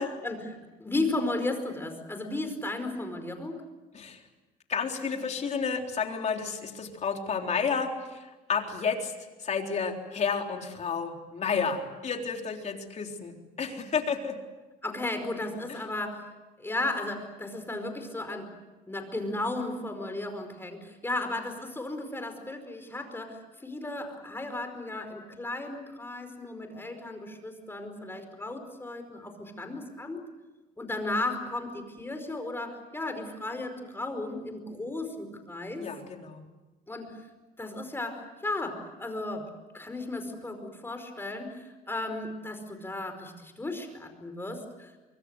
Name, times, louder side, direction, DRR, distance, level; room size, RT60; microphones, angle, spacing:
voice 1, 0.0-3.6 14.8-16.3 16.6-18.5 18.9-30.3 30.8-35.9 36.9-37.2 37.6-39.5 39.7-44.9, left 2 dB, 15° left, 7 dB, 5.0 m, -35 dB
voice 2, 4.7-9.1 9.4-14.4 35.8-36.4, left 6 dB, 40° left, 3 dB, 3.8 m, -31 dB
25.5 x 23.5 x 8.2 m, 1.1 s
cardioid pair, 110°, 17 cm